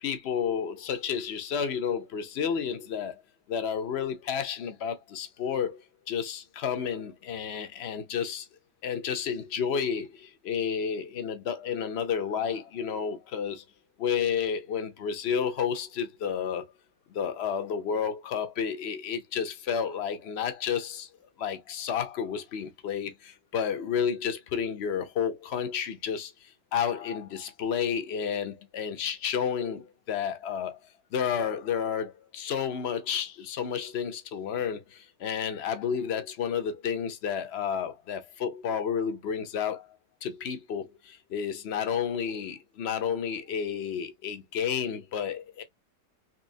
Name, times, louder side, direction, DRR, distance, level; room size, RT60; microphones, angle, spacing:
voice 1, 0.0-3.2 3.5-5.8 6.1-8.5 8.8-13.6 14.0-16.7 17.1-21.1 21.4-30.8 31.1-39.9 40.2-45.6, left 7 dB, 70° left, 0.6 m, -31 dB
4.1 x 3.1 x 2.6 m
omnidirectional pair, 1.9 m